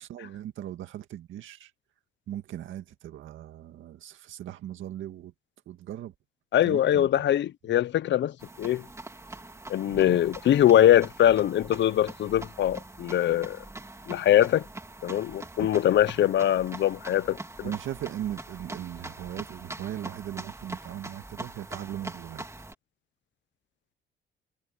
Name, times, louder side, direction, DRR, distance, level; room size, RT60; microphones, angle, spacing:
voice 1, 0.0-1.7 2.3-5.3 5.7-6.1 6.6-7.2 9.9-10.2 15.6-15.8 17.6-22.5, right 12 dB, 80° right, 2.0 m, -38 dB
voice 2, 6.5-8.8 9.7-13.6 14.1-14.6 15.0-17.7, left 11 dB, 65° left, 0.8 m, -22 dB
sound 1, 8.4-22.7, right 2 dB, 15° right, 2.1 m, -43 dB
cardioid pair, 90°, 20 cm